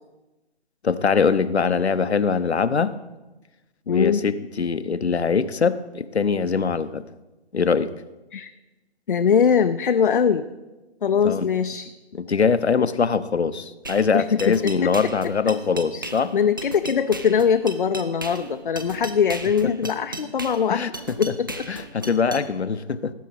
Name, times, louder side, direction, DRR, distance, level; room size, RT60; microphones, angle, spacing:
voice 1, 0.8-2.9 3.9-7.0 7.5-7.9 11.2-11.5 12.1-16.3 20.7-20.9 21.3-21.4 21.7-23.1, left 5 dB, 75° left, 14 dB, 0.8 m, -22 dB
voice 2, 3.9-4.2 8.3-8.5 9.1-10.5 11.0-11.9 14.1-14.9 16.3-20.8 21.2-21.6, left 7 dB, 50° left, 9 dB, 0.5 m, -21 dB
sound 1, 13.8-22.4, right 2 dB, 20° right, 0.4 m, -36 dB
17.5 x 8.3 x 4.1 m, 1.1 s
figure-of-eight pair, 145°, 33 cm